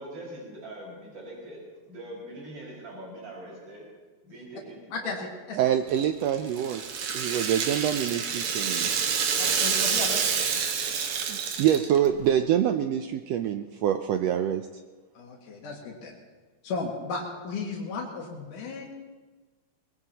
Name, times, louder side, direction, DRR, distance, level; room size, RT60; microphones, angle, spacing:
voice 1, 0.0-1.6 1.9-3.8 4.2-5.2 10.1-10.4, right 1 dB, 45° right, -4 dB, 6.2 m, -42 dB
voice 2, 5.6-6.8 7.1-8.9 11.3-14.6, right 10 dB, 85° right, 7 dB, 1.4 m, -25 dB
Rattle (instrument), 5.9-12.1, right 6 dB, 70° right, 2.4 m, -28 dB
voice 3, 9.4-10.2 15.2-16.2 16.6-18.9, left 4 dB, 85° left, -1 dB, 3.4 m, -34 dB
22.5 x 20.0 x 2.9 m, 1.3 s
omnidirectional pair, 3.6 m